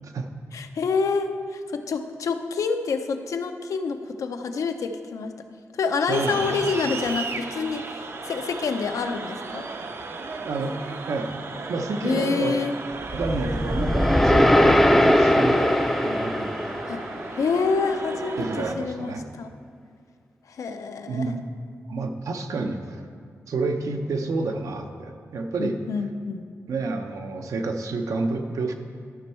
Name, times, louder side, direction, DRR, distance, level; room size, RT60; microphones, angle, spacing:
voice 1, 0.5-5.3 5.7-9.7 12.0-12.7 16.9-17.0 17.3-19.5 20.5-21.3 25.6-26.4, left 5 dB, 80° left, 7 dB, 0.6 m, -27 dB
sound 1, 6.1-18.7, right 4 dB, 50° right, 0.5 m, -35 dB
voice 2, 6.1-6.7 10.4-10.8 11.1-11.3 11.7-12.6 13.1-16.5 18.4-19.3 21.1-21.4 21.9-23.0 23.5-25.8 26.7-28.7, right 3 dB, 85° right, 5 dB, 0.7 m, -29 dB
sound 2, 13.1-17.4, left 1 dB, 5° left, 0.4 m, -20 dB
13.0 x 5.4 x 4.4 m, 2.2 s
wide cardioid pair, 160°, 5 cm